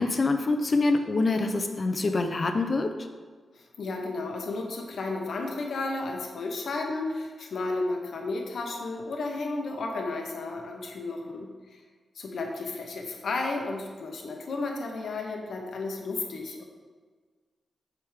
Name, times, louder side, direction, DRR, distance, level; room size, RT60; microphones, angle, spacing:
voice 1, 0.0-2.9, left 3 dB, 40° left, 6 dB, 0.5 m, -25 dB
voice 2, 3.5-11.8 12.1-16.6, left 3 dB, 70° left, 1 dB, 1.0 m, -33 dB
7.6 x 3.5 x 5.0 m, 1.5 s
wide cardioid pair, 110°, 0 cm